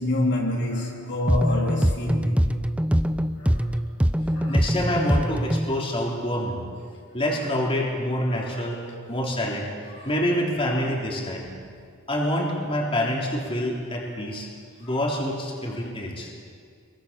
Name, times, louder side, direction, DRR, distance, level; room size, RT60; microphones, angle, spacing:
voice 1, 0.0-2.4 3.4-3.7 4.3-4.6 8.3-9.2 9.9-10.1 10.6-10.9 14.8-15.0 15.8-15.9, left 1 dB, 55° left, -2 dB, 3.7 m, -28 dB
sound 1, 1.3-5.8, equal, 5° right, 0.7 m, -23 dB
voice 2, 4.5-6.7 7.1-8.8 9.1-9.7 10.0-11.5 12.1-14.5 14.8-16.3, left 1 dB, 25° left, -2 dB, 3.7 m, -26 dB
26.5 x 23.5 x 7.0 m, 2.2 s
head